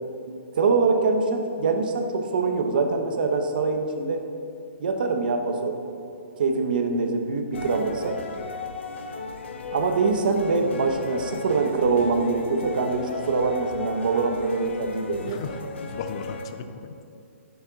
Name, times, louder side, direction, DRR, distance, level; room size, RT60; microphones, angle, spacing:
voice 1, 0.3-4.2 4.8-5.8 6.4-8.2 9.7-15.4, right 4 dB, 40° right, 5 dB, 0.8 m, -24 dB
sound 1, 7.5-16.5, left 4 dB, 60° left, 1.0 m, -36 dB
voice 2, 15.3-17.1, left 5 dB, 20° left, 9 dB, 0.4 m, -37 dB
11.0 x 7.1 x 3.9 m, 2.5 s
hypercardioid pair, 180°, 7 cm